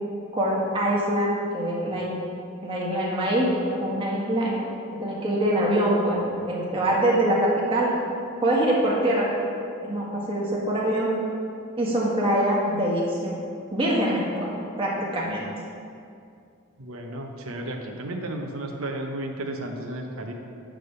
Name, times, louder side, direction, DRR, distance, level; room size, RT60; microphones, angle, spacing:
voice 1, 0.3-2.2 2.6-7.9 8.4-9.4 9.8-11.1 11.8-13.4 13.7-15.5, right 1 dB, 25° right, -5 dB, 1.8 m, -24 dB
voice 2, 16.8-20.3, right 1 dB, 75° right, 3 dB, 0.9 m, -33 dB
10.5 x 3.5 x 6.9 m, 2.4 s
head